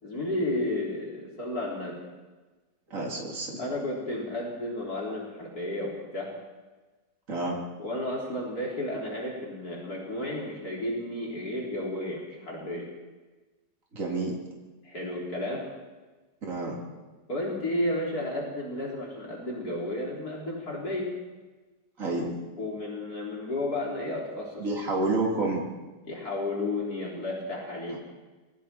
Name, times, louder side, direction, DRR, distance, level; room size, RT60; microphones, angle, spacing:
voice 1, 0.0-2.0 3.6-6.4 7.8-12.9 14.8-15.7 17.3-21.2 22.6-24.7 26.0-28.0, left 1 dB, 55° left, -3 dB, 4.5 m, -32 dB
voice 2, 2.9-3.5 7.3-7.6 13.9-14.4 16.4-16.8 22.0-22.3 24.6-25.7 27.9-28.0, right 2 dB, 45° right, -3 dB, 3.8 m, -29 dB
28.0 x 23.0 x 4.5 m, 1.2 s
omnidirectional pair, 1.9 m